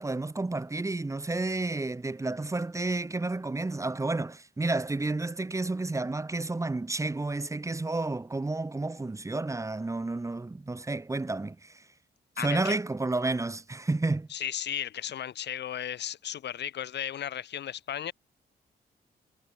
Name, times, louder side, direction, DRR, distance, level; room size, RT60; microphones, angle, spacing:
voice 1, 0.0-11.8 12.4-14.3, right 2 dB, 15° right, 2.0 m, -31 dB
voice 2, 12.4-12.8 14.3-18.1, left 10 dB, 85° left, 4.5 m, -35 dB
wide cardioid pair, 130°, 17 cm